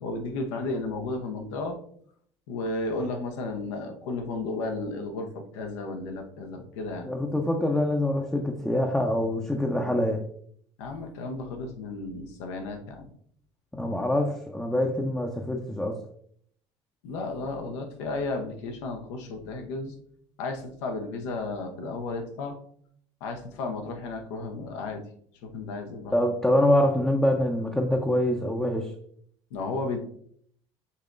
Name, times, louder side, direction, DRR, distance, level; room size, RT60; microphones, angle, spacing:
voice 1, 0.0-1.8 2.5-7.1 10.8-13.1 17.0-19.9 20.4-22.6 23.2-25.0 25.4-26.1 29.5-30.0, left 3 dB, 80° left, 4 dB, 0.8 m, -33 dB
voice 2, 7.1-10.2 13.7-16.0 26.1-28.9, left 1 dB, 5° left, 0 dB, 0.6 m, -25 dB
5.5 x 2.9 x 2.5 m, 0.62 s
hypercardioid pair, 70°, 15 cm